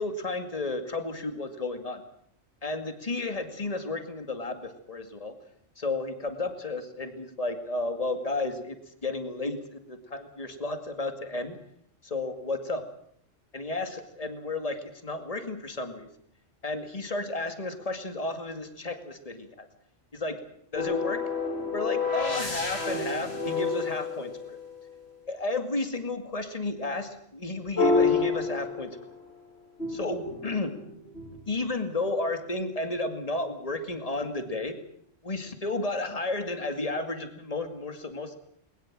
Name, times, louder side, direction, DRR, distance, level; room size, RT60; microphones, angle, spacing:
voice 1, 0.0-2.0 2.6-5.3 5.8-11.6 12.0-12.8 13.5-16.1 16.6-19.7 20.1-20.4 20.7-21.2 21.7-24.6 25.3-29.0 29.9-30.8 31.5-34.8 35.2-38.4, left 2 dB, 30° left, 7 dB, 2.4 m, -32 dB
sound 1, 20.8-24.9 27.8-29.3 29.8-31.6, left 4 dB, 55° left, 4.2 m, -29 dB
21.5 x 20.0 x 7.6 m, 0.67 s
omnidirectional pair, 1.3 m